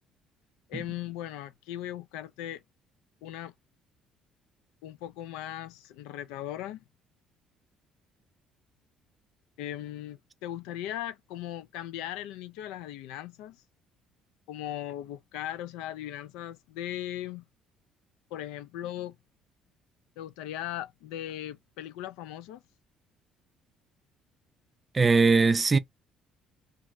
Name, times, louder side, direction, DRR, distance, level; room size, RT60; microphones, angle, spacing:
voice 1, 0.7-2.6 3.2-3.5 4.8-6.8 9.6-13.6 14.5-17.4 18.3-19.2 20.2-22.6, left 12 dB, 90° left, 0.3 m, -38 dB
voice 2, 24.9-25.8, right 4 dB, 25° right, 0.4 m, -20 dB
2.5 x 2.4 x 3.0 m
cardioid pair, 95°, 0 cm